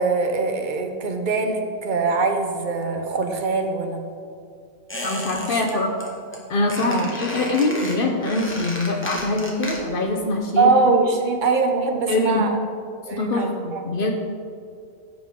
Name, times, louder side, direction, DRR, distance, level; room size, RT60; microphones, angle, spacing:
voice 1, 0.0-4.1 5.5-5.8 6.8-7.1 10.6-12.6 13.1-13.8, right 4 dB, 50° right, 5 dB, 1.0 m, -22 dB
Squeak, 4.9-5.7 6.0-6.4 6.7-10.1 10.3-10.4, left 1 dB, 10° left, 1.4 m, -33 dB
voice 2, 5.0-5.9 6.5-10.7 12.1-12.4 13.1-14.1, left 2 dB, 60° left, 3 dB, 0.9 m, -23 dB
14.5 x 5.7 x 3.7 m, 2.3 s
omnidirectional pair, 1.1 m